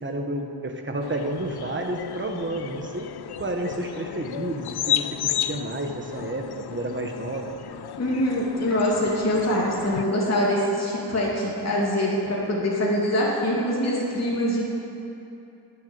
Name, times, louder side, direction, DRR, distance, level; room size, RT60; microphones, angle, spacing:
voice 1, 0.0-3.1 3.4-7.6, right 1 dB, 25° right, 3 dB, 1.2 m, -30 dB
sound 1, 1.0-10.0, left 10 dB, 65° left, 0.5 m, -33 dB
voice 2, 8.0-14.6, left 1 dB, 35° left, -5 dB, 2.5 m, -24 dB
11.5 x 8.5 x 9.4 m, 2.9 s
wide cardioid pair, 150°, 43 cm